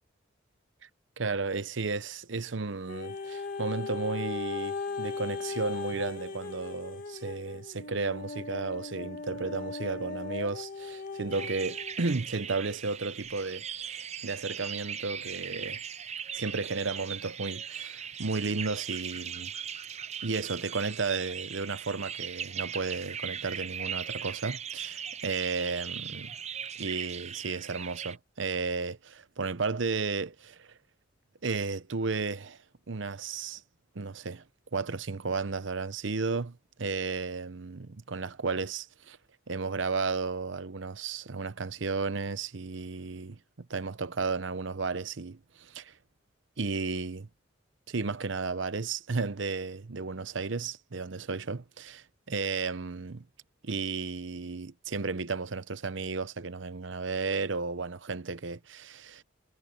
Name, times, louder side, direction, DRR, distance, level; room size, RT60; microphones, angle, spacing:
voice 1, 1.2-15.8 16.3-19.5 20.2-26.3 26.8-30.8 31.4-32.6 32.9-33.6 33.9-34.4 34.7-39.2 39.5-45.9 46.6-47.3 47.9-53.2 53.6-59.2, right 4 dB, 65° right, 0.8 m, -33 dB
sound 1, 2.9-12.0 12.6-12.7, left 4 dB, 45° left, 1.6 m, -38 dB
sound 2, 11.3-28.2, right 8 dB, 35° right, 0.6 m, -39 dB
head